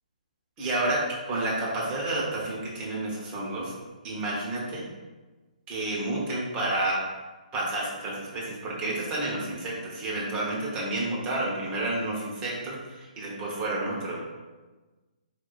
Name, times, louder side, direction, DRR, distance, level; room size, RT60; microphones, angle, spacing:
voice 1, 0.6-3.7 4.0-4.8 5.7-7.0 7.5-14.2, right 2 dB, 20° right, -5 dB, 1.2 m, -30 dB
4.6 x 2.8 x 4.0 m, 1.2 s
figure-of-eight pair, 130°, 5 cm